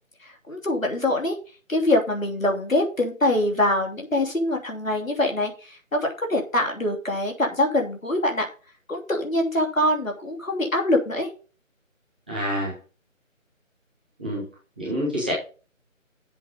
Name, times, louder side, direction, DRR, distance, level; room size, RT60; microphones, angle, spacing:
voice 1, 0.2-1.4 1.7-8.5 8.9-11.3, left 1 dB, 75° left, 2 dB, 3.2 m, -24 dB
voice 2, 12.3-12.7 14.2-14.4 14.8-15.3, equal, 5° right, -8 dB, 1.2 m, -27 dB
7.7 x 7.1 x 5.4 m, 0.36 s
figure-of-eight pair, 160°, 40 cm